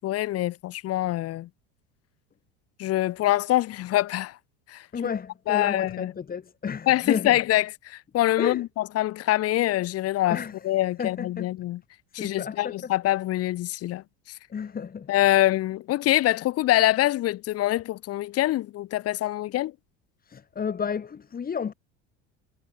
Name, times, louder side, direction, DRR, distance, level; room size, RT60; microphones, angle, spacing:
voice 1, 0.0-1.5 2.8-4.4 4.7-4.9 5.5-6.1 6.9-10.4 10.6-11.8 12.1-14.4 15.1-19.7, left 15 dB, 45° left, 1.2 m, -25 dB
voice 2, 4.9-7.4 8.4-8.6 10.3-10.7 11.0-11.5 12.2-12.8 14.5-15.1 20.2-21.7, left 7 dB, 25° left, 3.1 m, -31 dB
supercardioid pair, 105°, 33 cm